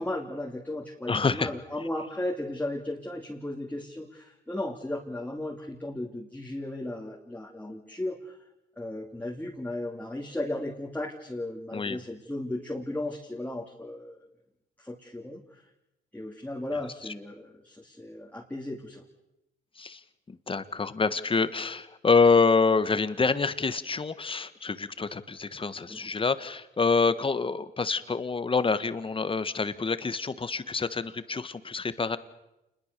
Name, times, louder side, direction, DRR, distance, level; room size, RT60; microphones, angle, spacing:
voice 1, 0.0-8.4 8.8-14.2 14.8-15.6 16.1-19.0 25.9-26.0, left 1 dB, 10° left, -1 dB, 2.7 m, -35 dB
voice 2, 1.1-1.5 11.7-12.0 19.8-20.0 20.3-32.2, left 4 dB, 25° left, 13 dB, 1.4 m, -26 dB
28.0 x 21.0 x 6.8 m, 0.93 s
cardioid pair, 90°, 20 cm